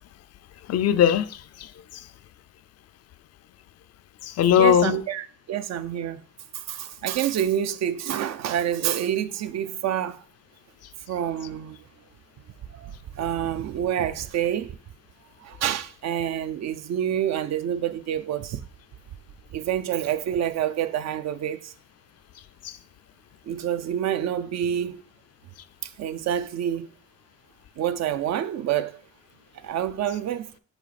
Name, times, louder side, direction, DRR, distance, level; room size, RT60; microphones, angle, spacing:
voice 1, 0.7-2.1 4.2-5.0 22.6-22.8, left 10 dB, 55° left, 0.4 m, -21 dB
voice 2, 4.6-6.2 6.5-10.2 11.1-11.9 12.7-14.8 15.4-18.6 19.5-21.7 23.5-25.0 25.8-26.9 27.8-29.0 29.5-30.5, right 10 dB, 60° right, 0.5 m, -27 dB
5.8 x 3.9 x 4.1 m
cardioid pair, 90°, 30 cm